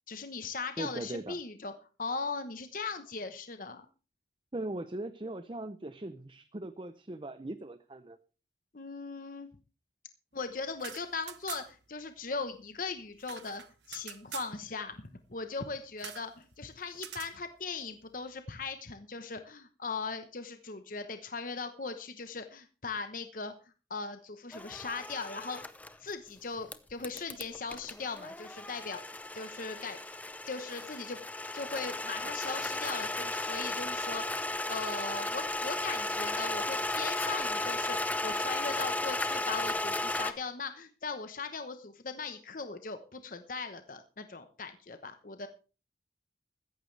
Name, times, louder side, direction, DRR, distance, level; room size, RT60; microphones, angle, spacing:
voice 1, 0.1-1.7 2.0-3.9 8.7-9.5 10.3-13.6 13.9-15.0 15.3-23.5 23.9-25.6 26.0-29.0 29.3-30.0 30.5-31.2 31.5-45.5, left 4 dB, 50° left, 8 dB, 1.0 m, -39 dB
voice 2, 0.8-1.4 4.5-8.2, right 2 dB, 30° right, 11 dB, 0.6 m, -39 dB
sound 1, 10.7-11.9 12.2-12.3 12.6-14.6 16.0-16.3 17.0-17.4, right 11 dB, 85° right, 0.9 m, -45 dB
sound 2, 24.5-25.9 26.7-40.3, left 2 dB, 10° left, 0.7 m, -35 dB
14.5 x 14.5 x 3.3 m, 0.34 s
head